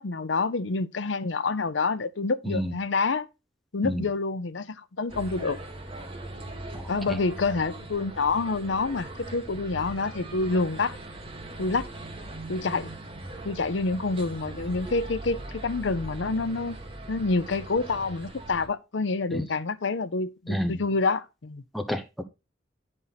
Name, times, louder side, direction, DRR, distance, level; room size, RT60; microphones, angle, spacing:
voice 1, 0.0-3.3 3.7-5.6 6.9-10.9 11.6-11.9 12.5-12.9 13.4-16.8 17.1-21.6, left 3 dB, 85° left, 0.7 m, -27 dB
sound 1, 5.1-18.7, right 2 dB, 30° right, 2.2 m, -40 dB
voice 2, 6.7-7.2 19.3-19.4 20.5-20.8 21.7-22.2, equal, ahead, 0.8 m, -30 dB
9.9 x 5.4 x 4.1 m
head